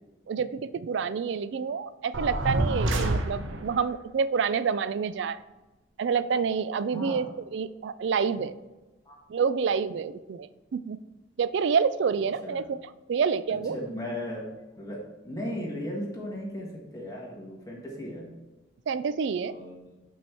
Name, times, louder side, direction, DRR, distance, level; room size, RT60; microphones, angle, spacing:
voice 1, 0.3-5.4 6.0-8.6 9.3-11.0 11.4-12.8 13.1-13.8 18.9-19.5, right 6 dB, 65° right, 15 dB, 0.3 m, -28 dB
sound 1, 2.1-3.8, right 1 dB, 80° right, 0.8 m, -27 dB
voice 2, 6.9-7.3 9.0-9.2 12.4-12.7 13.5-14.5 14.8-15.0 15.2-16.7 16.9-18.3 19.4-20.0, left 1 dB, 20° left, -3 dB, 1.6 m, -36 dB
6.0 x 4.6 x 5.7 m, 1.1 s
head